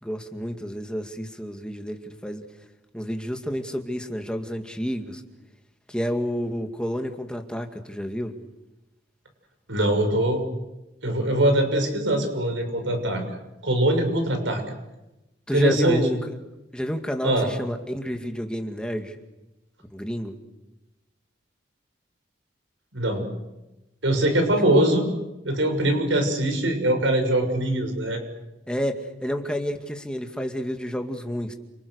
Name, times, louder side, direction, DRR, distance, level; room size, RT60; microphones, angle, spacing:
voice 1, 0.0-2.4 2.9-5.2 5.9-8.4 15.5-16.4 16.7-19.2 19.9-20.4 24.7-24.9 28.7-31.5, equal, 5° left, 5 dB, 2.2 m, -29 dB
voice 2, 9.7-10.4 11.0-13.2 13.6-14.6 15.5-16.0 17.2-17.5 22.9-23.3 24.0-25.0 25.4-28.2, right 1 dB, 80° right, 5 dB, 6.7 m, -22 dB
30.0 x 26.5 x 6.6 m, 0.99 s
head